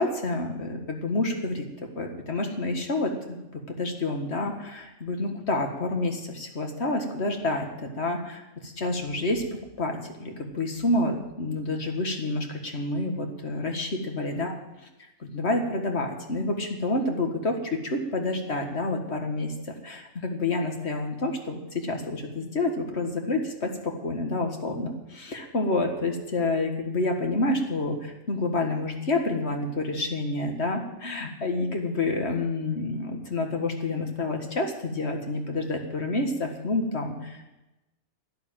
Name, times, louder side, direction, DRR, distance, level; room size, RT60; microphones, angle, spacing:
voice 1, 0.0-1.7 2.0-9.4 9.8-14.6 15.2-37.4, left 2 dB, 55° left, 3 dB, 2.0 m, -28 dB
11.5 x 11.0 x 7.5 m, 0.99 s
omnidirectional pair, 1.4 m